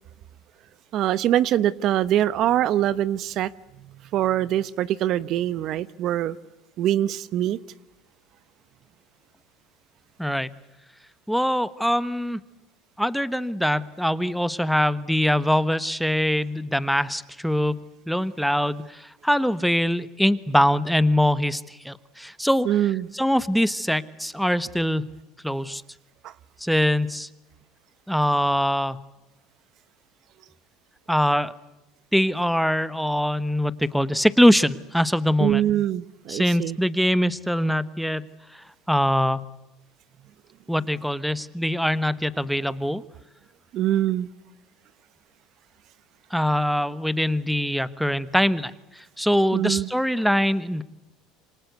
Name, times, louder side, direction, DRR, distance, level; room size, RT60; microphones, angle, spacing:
voice 1, 0.9-3.5 4.1-6.4 6.8-7.6 22.6-23.1 26.2-26.3 35.4-36.8 43.7-44.3 49.5-49.9, right 12 dB, 55° right, 0.9 m, -23 dB
voice 2, 10.2-10.5 11.3-12.4 13.0-22.7 23.1-25.0 25.4-25.8 26.6-27.3 28.1-29.0 31.1-31.5 32.1-35.6 36.3-38.2 38.9-39.4 40.7-43.0 46.3-48.7 49.0-50.8, equal, ahead, 1.1 m, -23 dB
27.5 x 25.5 x 8.1 m
supercardioid pair, 115°, 0 cm